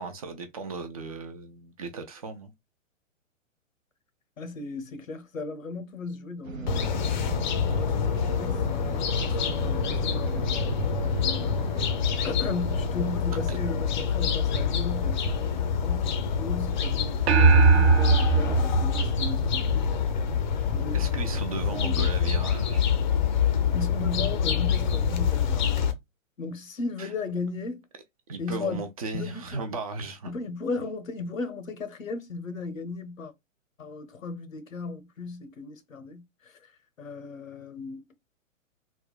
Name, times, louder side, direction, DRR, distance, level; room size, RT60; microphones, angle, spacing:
voice 1, 0.0-2.5 13.5-13.6 20.9-22.8 27.0-27.1 28.3-30.3, right 4 dB, 30° right, 0.4 m, -36 dB
voice 2, 4.4-7.3 7.7-11.9 12.2-20.2 20.7-21.0 21.7-22.1 23.7-25.8 26.4-27.8 28.4-28.8 29.1-29.7 30.3-33.3 33.8-36.6 37.0-38.1, left 3 dB, 80° left, 0.8 m, -36 dB
sound 1, 6.4-11.9, right 4 dB, 85° right, 0.8 m, -38 dB
sound 2, 6.7-25.9, left 6 dB, 35° left, 0.5 m, -26 dB
sound 3, 17.3-19.9, right 4 dB, 55° right, 0.9 m, -20 dB
3.5 x 2.1 x 2.2 m
figure-of-eight pair, 120°, 39 cm